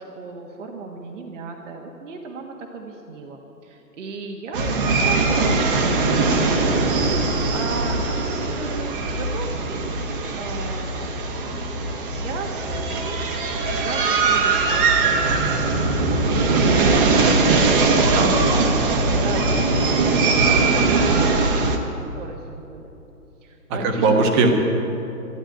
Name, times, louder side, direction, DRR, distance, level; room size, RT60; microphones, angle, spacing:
voice 1, 0.0-10.0 10.3-11.3 11.8-17.2 17.6-18.8 19.1-22.9 23.4-24.1, right 4 dB, 50° right, 2 dB, 1.5 m, -36 dB
sound 1, 4.5-21.8, right 3 dB, 35° right, 1.4 m, -20 dB
voice 2, 18.1-18.4 23.7-24.5, right 3 dB, 20° right, 3 dB, 1.2 m, -19 dB
12.5 x 11.5 x 9.0 m, 2.9 s
hypercardioid pair, 150°, 48 cm